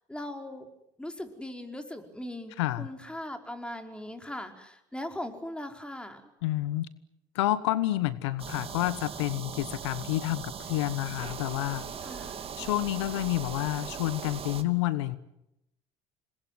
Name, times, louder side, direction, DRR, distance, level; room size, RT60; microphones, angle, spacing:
voice 1, 0.1-0.7 1.0-6.3 12.0-12.5, left 1 dB, 5° left, 5 dB, 5.1 m, -39 dB
voice 2, 2.6-2.9 6.4-6.9 7.3-11.9 12.6-15.2, left 16 dB, 80° left, 16 dB, 1.2 m, -29 dB
sound 1, 8.4-14.6, right 7 dB, 40° right, 2.9 m, -39 dB
27.5 x 21.0 x 9.4 m, 0.85 s
hypercardioid pair, 70°, 14 cm